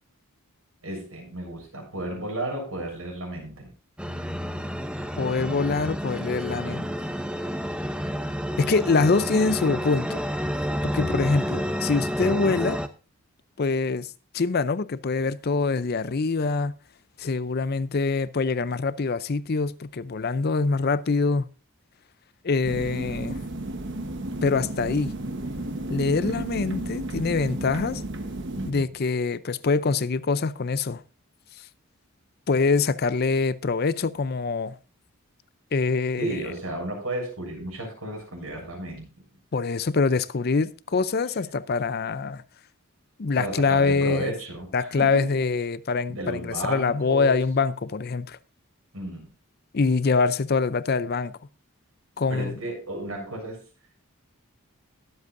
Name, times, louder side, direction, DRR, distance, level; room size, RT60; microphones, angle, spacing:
voice 1, 0.8-3.7 28.5-28.9 36.2-39.0 43.4-45.4 46.1-47.4 48.9-49.3 52.3-53.6, right 1 dB, 75° right, 7.0 m, -33 dB
sound 1, 4.0-12.9, equal, 5° right, 0.7 m, -30 dB
voice 2, 5.2-6.9 8.6-10.3 10.8-12.8 13.6-16.7 17.2-21.5 22.4-23.4 24.4-25.1 25.9-28.0 28.7-31.0 32.5-34.7 35.7-36.4 39.5-42.4 43.2-44.3 44.7-48.4 49.7-51.3 52.2-52.5, left 4 dB, 45° left, 0.5 m, -24 dB
sound 2, 22.6-28.7, right 1 dB, 55° right, 1.2 m, -33 dB
21.5 x 8.0 x 2.6 m
head